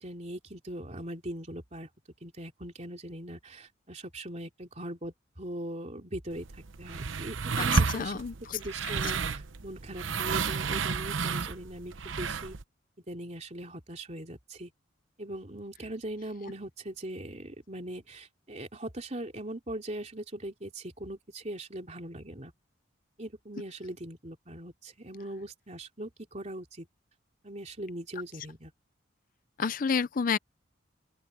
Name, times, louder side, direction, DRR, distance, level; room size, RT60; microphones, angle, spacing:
voice 1, 0.0-1.9 2.2-8.2 8.5-12.6 13.1-14.7 15.2-22.5 23.2-26.9 27.4-28.7, right 1 dB, 35° right, 3.3 m, -40 dB
sound 1, 6.3-12.6, right 5 dB, 85° right, 0.9 m, -31 dB
voice 2, 7.6-8.6 9.0-9.1 29.6-30.4, left 6 dB, 45° left, 0.5 m, -30 dB
open air
head